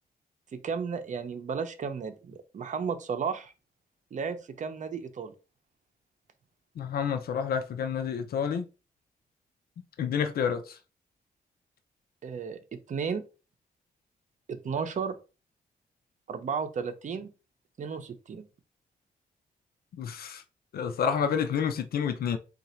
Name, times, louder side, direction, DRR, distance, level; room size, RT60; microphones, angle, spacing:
voice 1, 0.5-3.5 4.1-5.3 12.2-13.2 14.5-15.2 16.3-17.3 17.8-18.4, right 6 dB, 55° right, 0.7 m, -33 dB
voice 2, 6.8-8.7 10.0-10.8 20.0-20.4 20.7-22.4, left 7 dB, 80° left, 0.5 m, -29 dB
3.9 x 2.5 x 4.3 m
wide cardioid pair, 115°, 16 cm